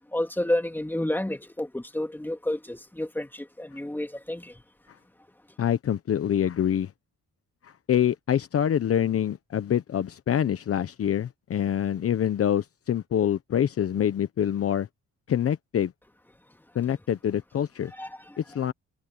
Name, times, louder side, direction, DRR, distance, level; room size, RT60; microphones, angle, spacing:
voice 1, 0.1-4.6 17.9-18.4, left 1 dB, 5° left, 2.6 m, -30 dB
voice 2, 5.6-6.9 7.6-14.9 15.3-15.9 16.7-17.9 18.5-18.7, left 9 dB, 50° left, 1.0 m, -25 dB
cardioid pair, 90°, 30 cm